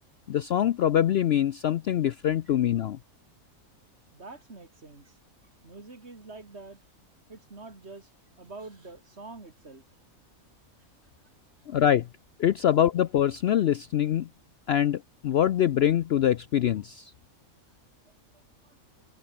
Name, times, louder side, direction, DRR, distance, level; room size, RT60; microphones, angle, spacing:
voice 1, 0.3-3.0 11.7-12.1 12.4-14.3 14.7-17.1, left 10 dB, 65° left, 0.7 m, -24 dB
voice 2, 4.1-5.2 5.6-6.8 7.3-8.1 8.4-9.8 11.7-11.8 18.3-18.8, right 3 dB, 50° right, 3.3 m, -46 dB
omnidirectional pair, 1.5 m